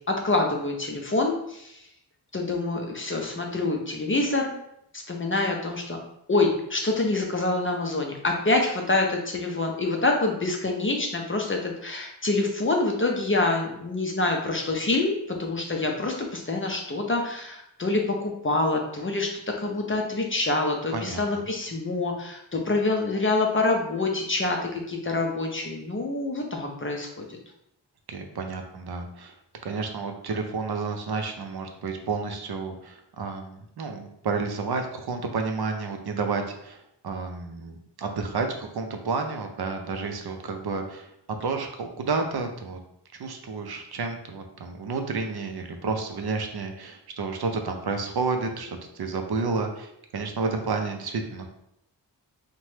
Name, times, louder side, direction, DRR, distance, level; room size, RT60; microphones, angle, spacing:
voice 1, 0.1-1.8 2.3-4.5 4.9-6.0 6.3-27.4, left 2 dB, 30° left, 1 dB, 0.5 m, -26 dB
voice 2, 20.9-21.4 28.1-29.3 29.6-41.1 41.4-42.8 43.2-51.5, right 4 dB, 60° right, 4 dB, 0.5 m, -31 dB
2.8 x 2.2 x 3.1 m, 0.77 s
wide cardioid pair, 60°, 44 cm